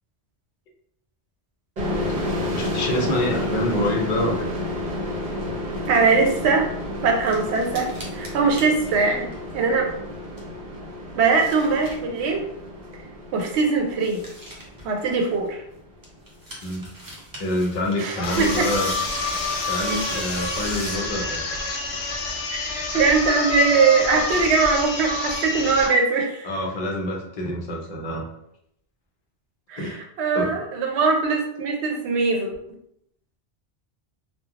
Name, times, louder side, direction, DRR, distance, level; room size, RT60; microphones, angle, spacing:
sound 1, 1.8-15.2, left 1 dB, 45° right, 0.9 m, -31 dB
voice 1, 2.5-4.5 16.6-16.8 17.4-18.9 19.7-21.4 26.4-28.3 29.8-30.0 30.3-30.6, left 1 dB, 50° left, 0 dB, 0.6 m, -26 dB
sound 2, 5.8-6.4 6.9-9.7 10.0-10.6 11.0-12.5 12.9-13.0 13.2-13.3 13.5-13.6 13.9-15.6 16.0-21.1, equal, 25° right, 0.5 m, -38 dB
voice 2, 5.9-6.7 7.0-9.3 9.5-9.9 11.2-12.5 13.3-14.2 14.8-15.6 18.0-18.7 22.6-26.5 29.7-32.5, right 4 dB, 75° right, 2 dB, 0.8 m, -21 dB
sound 3, 18.2-26.0, left 3 dB, 75° left, 0.8 m, -28 dB
3.1 x 2.2 x 2.4 m, 0.76 s
omnidirectional pair, 1.1 m